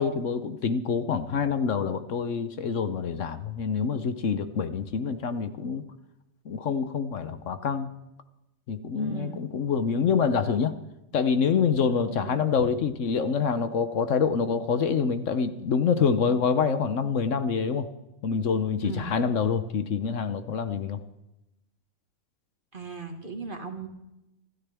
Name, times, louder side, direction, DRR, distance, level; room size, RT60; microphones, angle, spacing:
voice 1, 0.0-5.8 6.5-7.9 8.7-10.8 11.1-17.9 18.2-21.0, left 6 dB, 65° left, 10 dB, 1.1 m, -26 dB
voice 2, 9.0-9.4 12.1-12.8 18.8-19.1 22.7-23.9, right 4 dB, 40° right, 5 dB, 1.7 m, -38 dB
26.0 x 13.0 x 3.5 m, 0.94 s
omnidirectional pair, 1.5 m